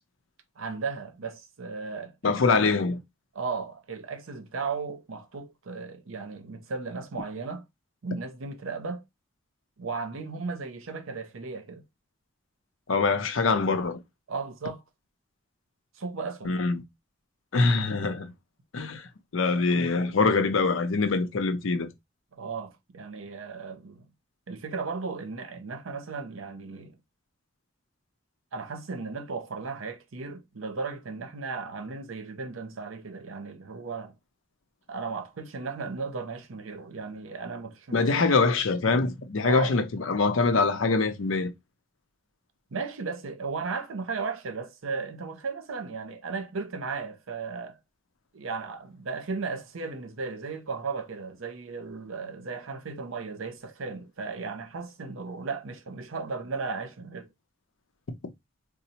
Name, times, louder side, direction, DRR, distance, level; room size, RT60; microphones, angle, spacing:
voice 1, 0.6-2.7 3.3-7.7 8.0-9.0 9.8-11.8 14.3-14.8 15.9-16.5 22.3-24.1 24.5-26.9 28.5-34.1 34.9-38.3 39.4-39.7 42.7-47.8 48.3-57.3, right 4 dB, 85° right, 0.6 m, -35 dB
voice 2, 2.2-3.0 12.9-14.0 16.4-16.8 17.5-18.3 18.7-19.1 19.3-21.9 37.9-41.5, left 4 dB, 80° left, 0.6 m, -24 dB
4.1 x 2.0 x 2.8 m
head